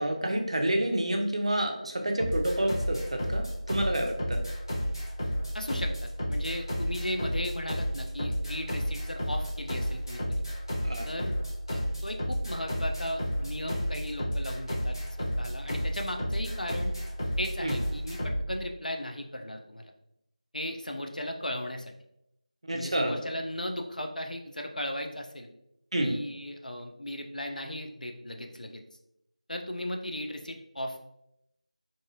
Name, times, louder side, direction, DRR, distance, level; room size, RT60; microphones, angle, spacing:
voice 1, 0.0-3.0 3.3-4.4 10.8-11.0 17.6-17.7 22.6-23.1 25.9-26.1, right 1 dB, 50° right, 3 dB, 0.4 m, -28 dB
sound 1, 2.2-18.5, equal, 30° left, 0.6 m, -31 dB
voice 2, 5.5-10.2 11.0-11.3 11.7-16.9 17.4-19.9 20.5-21.9 22.7-25.5 26.0-28.8 29.5-31.0, left 1 dB, 90° left, 3 dB, 0.4 m, -36 dB
2.6 x 2.3 x 2.7 m, 0.83 s
figure-of-eight pair, 170°, 4 cm